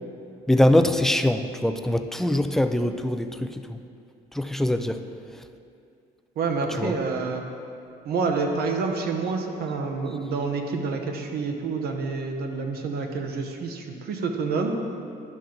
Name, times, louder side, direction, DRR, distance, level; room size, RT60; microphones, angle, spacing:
voice 1, 0.5-3.8 4.3-5.0 6.8-6.9, left 1 dB, ahead, 8 dB, 0.4 m, -23 dB
voice 2, 6.4-7.4 8.0-14.8, right 4 dB, 65° right, 3 dB, 1.0 m, -28 dB
10.5 x 5.8 x 3.8 m, 2.4 s
cardioid pair, 110°, 17 cm